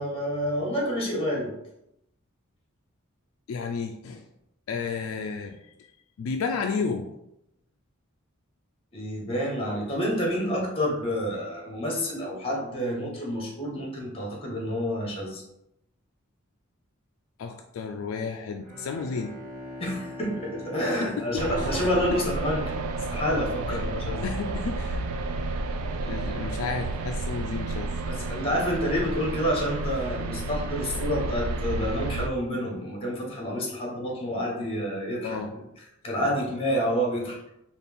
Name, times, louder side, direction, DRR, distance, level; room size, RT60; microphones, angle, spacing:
voice 1, 0.0-1.5 8.9-15.4 19.8-22.7 23.1-24.2 28.1-35.4 36.0-37.4, equal, 25° left, -2 dB, 1.2 m, -28 dB
voice 2, 3.5-4.2 4.7-5.7 6.2-7.1 17.4-19.3 21.0-21.7 22.1-22.2 23.7-23.8 24.2-25.0 26.0-27.9 35.2-35.5, left 5 dB, 70° left, 4 dB, 0.3 m, -32 dB
Bowed string instrument, 18.5-23.4, left 1 dB, 35° right, 1.0 m, -42 dB
sound 1, 21.4-32.3, right 3 dB, 80° right, 0.3 m, -31 dB
4.1 x 2.4 x 3.5 m, 0.83 s
head